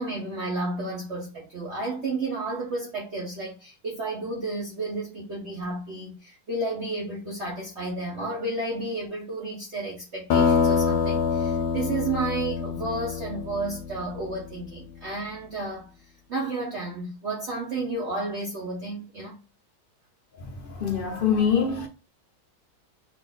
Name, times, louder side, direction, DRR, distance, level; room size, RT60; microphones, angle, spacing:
voice 1, 0.0-15.9 16.3-19.4, right 2 dB, 50° right, 0.9 m, -32 dB
sound 1, 10.3-14.6, left 5 dB, 75° left, 1.2 m, -25 dB
voice 2, 20.4-21.9, left 7 dB, 60° left, 0.5 m, -25 dB
3.5 x 2.6 x 3.9 m
omnidirectional pair, 1.9 m